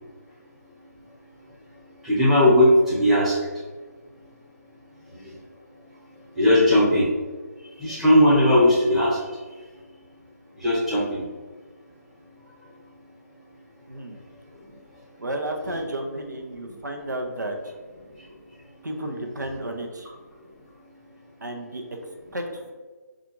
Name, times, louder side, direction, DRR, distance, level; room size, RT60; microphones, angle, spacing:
voice 1, 2.0-3.3 6.4-7.1 7.8-9.1 10.6-11.2, left 1 dB, ahead, -10 dB, 1.0 m, -18 dB
voice 2, 15.2-17.7 18.8-20.1 21.4-21.8 22.3-22.7, right 1 dB, 85° right, 3 dB, 0.6 m, -32 dB
4.9 x 2.4 x 3.0 m, 1.4 s
figure-of-eight pair, 150°, 9 cm